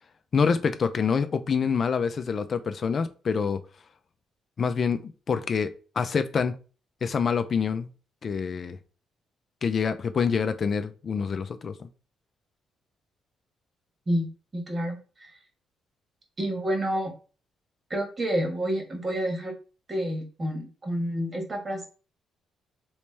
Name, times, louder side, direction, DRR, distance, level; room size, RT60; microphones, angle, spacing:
voice 1, 0.3-3.6 4.6-6.5 7.0-7.9 8.2-8.8 9.6-11.9, left 6 dB, 50° left, 0.4 m, -26 dB
voice 2, 14.5-15.0 16.4-17.1 17.9-19.5 19.9-21.9, equal, 35° right, 1.5 m, -28 dB
3.1 x 3.1 x 3.3 m
cardioid pair, 80°, 0 cm